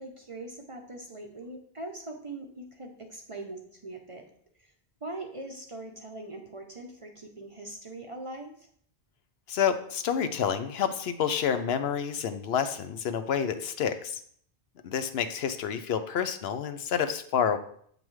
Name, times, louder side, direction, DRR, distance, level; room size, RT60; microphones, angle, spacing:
voice 1, 0.0-4.3 4.6-4.7 5.0-8.7, right 2 dB, 35° right, 3 dB, 0.6 m, -41 dB
voice 2, 9.5-14.2 14.8-17.6, left 8 dB, 70° left, 10 dB, 0.8 m, -29 dB
7.5 x 5.3 x 3.1 m, 0.62 s
omnidirectional pair, 1.1 m